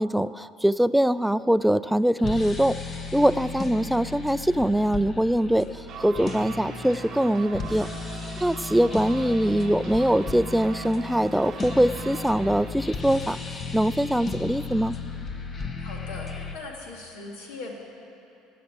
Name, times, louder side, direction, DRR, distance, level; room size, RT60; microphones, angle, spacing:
voice 1, 0.0-2.8 3.1-7.9 8.4-14.9, equal, 5° right, 15 dB, 0.3 m, -23 dB
sound 1, 2.2-16.5, left 4 dB, 35° left, 1.1 m, -35 dB
sound 2, 5.9-12.7, right 8 dB, 50° right, 0.8 m, -41 dB
voice 2, 15.8-17.7, left 3 dB, 75° left, 0 dB, 2.2 m, -39 dB
15.5 x 5.9 x 9.0 m, 2.8 s
hypercardioid pair, 75°, 0 cm